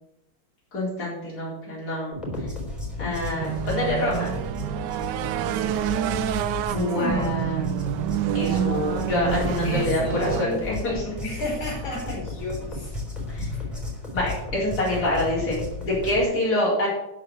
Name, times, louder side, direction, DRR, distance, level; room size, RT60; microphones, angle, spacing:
voice 1, 0.7-2.1 3.0-4.2 6.7-7.6 8.3-11.2 13.3-13.5 14.1-16.9, left 1 dB, 50° left, -7 dB, 4.8 m, -26 dB
sound 1, 2.1-16.2, left 2 dB, ahead, 3.6 m, -34 dB
sound 2, 3.4-10.4, right 12 dB, 75° right, 1.1 m, -27 dB
voice 2, 5.5-6.1 6.6-8.1 9.6-10.6 11.2-12.9 13.5-13.6, left 2 dB, 75° left, -3 dB, 5.2 m, -34 dB
12.0 x 5.2 x 7.5 m, 0.86 s
omnidirectional pair, 2.2 m